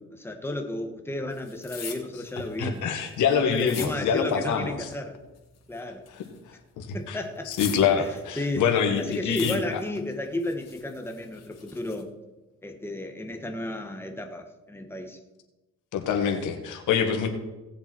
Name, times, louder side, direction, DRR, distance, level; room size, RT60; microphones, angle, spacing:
voice 1, 0.0-2.8 3.5-5.2 5.7-6.1 6.9-7.5 8.0-8.1 8.4-8.6 9.0-12.1 12.6-15.2, left 1 dB, 10° left, 4 dB, 1.6 m, -33 dB
sound 1, 1.3-4.5 4.8-6.5 6.8-8.7 9.0-10.0 10.3-12.0, left 7 dB, 60° left, 2.5 m, -42 dB
voice 2, 2.6-4.9 6.1-7.2 7.5-9.8 15.9-17.3, left 7 dB, 80° left, 5 dB, 1.9 m, -26 dB
18.0 x 6.9 x 4.6 m, 1.1 s
cardioid pair, 90°, 30 cm